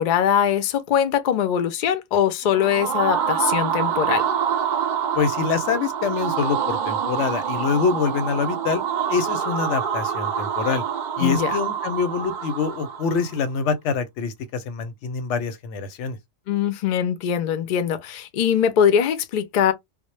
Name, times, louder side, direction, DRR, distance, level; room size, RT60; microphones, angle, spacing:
voice 1, 0.0-4.2 11.2-11.6 16.5-19.7, left 8 dB, 60° left, 0.5 m, -22 dB
sound 1, 2.4-13.3, right 8 dB, 60° right, 0.5 m, -26 dB
voice 2, 5.1-8.8 9.1-10.8 11.2-16.2, left 5 dB, 85° left, 0.9 m, -25 dB
2.1 x 2.0 x 3.0 m
omnidirectional pair, 1.2 m